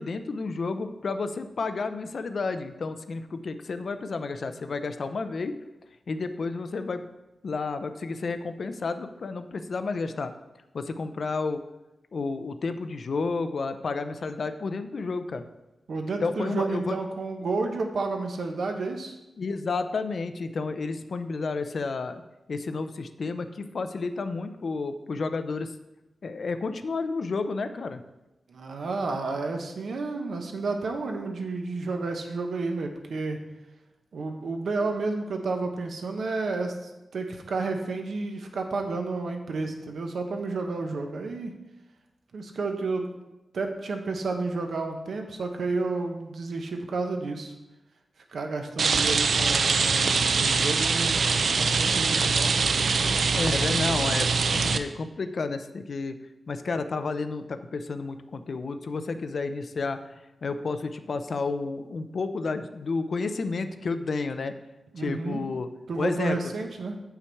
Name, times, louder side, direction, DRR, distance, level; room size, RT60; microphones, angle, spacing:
voice 1, 0.0-5.5 6.1-7.1 7.4-10.3 10.7-11.6 12.1-15.4 16.2-17.0 19.4-22.2 22.5-25.7 26.2-28.0 53.3-56.2 56.5-60.0 60.4-64.5 65.0-65.7 66.0-66.5, left 4 dB, 55° left, 10 dB, 0.5 m, -31 dB
voice 2, 15.9-19.2 28.5-33.5 34.1-41.5 42.3-43.1 43.5-47.5 48.3-51.3 51.6-52.6 64.9-65.4 65.9-67.0, right 3 dB, 80° right, 4 dB, 1.0 m, -31 dB
Rain, 48.8-54.8, right 4 dB, 65° right, 0.4 m, -23 dB
8.4 x 5.7 x 4.6 m, 0.99 s
wide cardioid pair, 165°, 0 cm